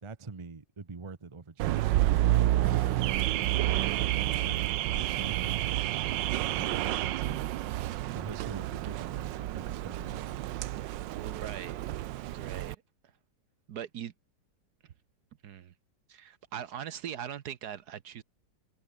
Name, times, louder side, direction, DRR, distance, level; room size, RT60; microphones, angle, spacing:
voice 1, 0.0-2.0 2.3-4.6 4.9-5.8 6.5-7.5 8.1-10.6, right 4 dB, 25° right, 0.8 m, -44 dB
Car / Alarm, 1.6-12.7, right 15 dB, 90° right, 1.4 m, -29 dB
voice 2, 11.1-11.8 12.3-12.8 13.7-14.1 15.4-15.7 16.1-18.2, right 9 dB, 65° right, 1.4 m, -40 dB
omnidirectional pair, 1.9 m